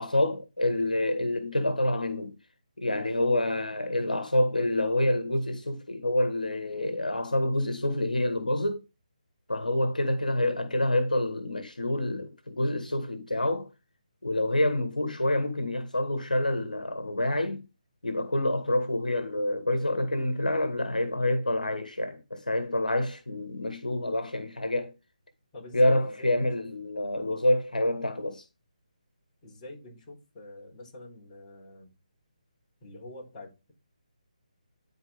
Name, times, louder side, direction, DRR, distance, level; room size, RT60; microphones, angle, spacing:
voice 1, 0.0-2.4 2.8-8.8 9.5-13.7 14.2-17.6 18.0-24.9 25.7-28.4, left 1 dB, 80° left, 1.6 m, -27 dB
voice 2, 25.5-26.6 29.4-31.9 32.8-33.7, left 2 dB, 25° left, 3.9 m, -46 dB
10.5 x 4.5 x 3.5 m
figure-of-eight pair, 150°, 4 cm